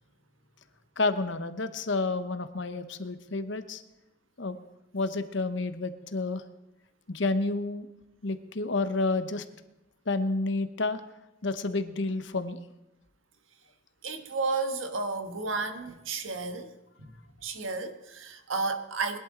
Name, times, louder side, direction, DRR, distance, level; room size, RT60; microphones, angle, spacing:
voice 1, 1.0-3.8 4.4-4.6 4.9-6.4 7.1-7.9 8.2-9.4 10.1-11.0 11.4-12.6, left 3 dB, 65° left, 10 dB, 0.9 m, -30 dB
voice 2, 14.0-16.7 17.0-17.1 17.4-19.2, right 3 dB, 85° right, 8 dB, 1.3 m, -32 dB
21.0 x 11.5 x 3.8 m, 0.92 s
head